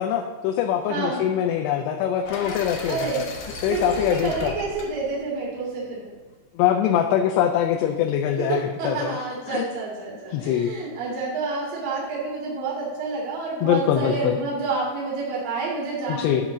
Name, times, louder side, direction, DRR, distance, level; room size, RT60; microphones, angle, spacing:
voice 1, 0.0-3.1 3.6-4.5 6.6-9.1 9.5-9.6 10.3-10.7 13.6-14.4 16.1-16.4, left 10 dB, 80° left, 3 dB, 2.7 m, -23 dB
voice 2, 0.9-1.2 2.8-3.2 3.7-6.2 8.3-16.5, right 3 dB, 55° right, -6 dB, 3.6 m, -29 dB
sound 1, 2.2-6.3, left 3 dB, 65° left, 2.3 m, -37 dB
10.5 x 4.3 x 7.1 m, 1.4 s
omnidirectional pair, 5.0 m